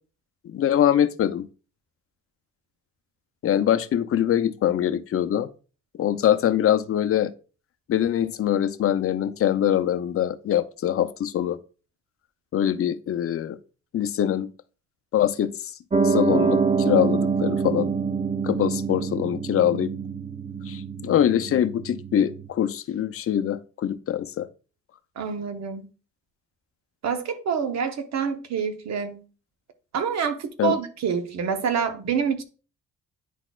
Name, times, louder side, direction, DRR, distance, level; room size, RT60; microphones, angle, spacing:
voice 1, 0.4-1.5 3.4-5.5 6.0-7.3 7.9-11.6 12.5-13.6 13.9-14.5 15.1-15.7 16.0-17.9 18.4-19.9 20.7-24.5 30.6-30.7, left 10 dB, 50° left, 0.6 m, -23 dB
Piano, 15.9-22.5, right 5 dB, 20° right, 0.6 m, -26 dB
voice 2, 25.2-25.9 27.0-29.2 29.9-32.4, right 6 dB, 60° right, 1.0 m, -27 dB
10.0 x 4.0 x 2.4 m
cardioid pair, 90°, 30 cm